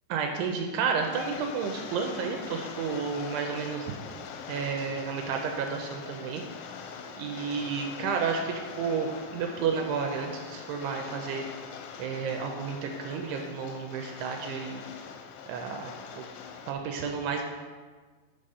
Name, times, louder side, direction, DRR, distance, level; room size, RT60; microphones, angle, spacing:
voice 1, 0.1-3.9 4.5-6.4 7.2-11.4 12.0-14.8 15.5-16.3 16.7-17.4, right 5 dB, 80° right, 3 dB, 2.5 m, -31 dB
Rain, 1.0-16.7, left 6 dB, 85° left, 2.9 m, -43 dB
7.6 x 5.1 x 5.4 m, 1.4 s
omnidirectional pair, 5.1 m